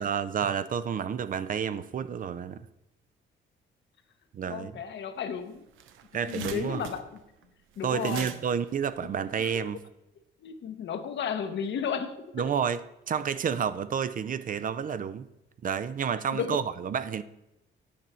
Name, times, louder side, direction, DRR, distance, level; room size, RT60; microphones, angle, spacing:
voice 1, 0.0-2.7 4.3-4.8 6.1-6.8 7.8-9.8 12.3-15.3 15.6-17.2, right 7 dB, 45° right, 0.5 m, -30 dB
voice 2, 4.5-5.6 6.3-7.2 7.8-8.3 10.4-12.2 16.3-16.6, left 7 dB, 65° left, 0.9 m, -33 dB
sound 1, 5.2-5.3 5.6-9.8, right 9 dB, 85° right, 0.6 m, -43 dB
8.5 x 5.5 x 4.4 m
cardioid pair, 90°, 20 cm